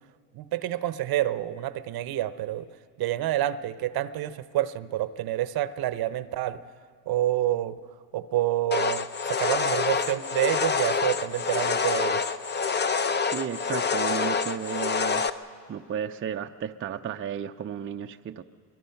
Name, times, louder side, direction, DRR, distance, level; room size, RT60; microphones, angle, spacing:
voice 1, 0.3-2.7 3.0-6.6 7.1-7.8 8.1-12.3, right 13 dB, 60° right, 14 dB, 0.8 m, -28 dB
sound 1, 8.7-15.3, left 5 dB, 25° left, 0.7 m, -27 dB
voice 2, 13.3-15.3 15.7-18.4, right 8 dB, 30° right, 5 dB, 0.6 m, -33 dB
24.5 x 23.0 x 5.8 m, 2.1 s
cardioid pair, 105°, 42 cm